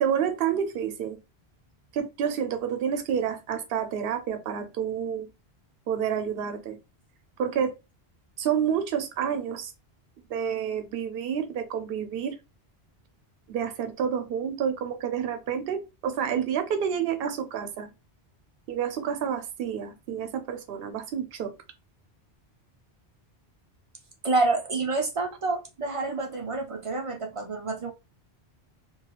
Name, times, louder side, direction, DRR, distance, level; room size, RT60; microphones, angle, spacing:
voice 1, 0.0-1.2 1.9-5.3 5.9-6.8 7.4-7.7 8.4-9.7 10.3-12.3 13.5-17.9 18.7-21.5, right 8 dB, 65° right, 0.7 m, -29 dB
voice 2, 24.2-27.9, right 3 dB, 50° right, 0.4 m, -28 dB
2.3 x 2.3 x 2.9 m
omnidirectional pair, 1.1 m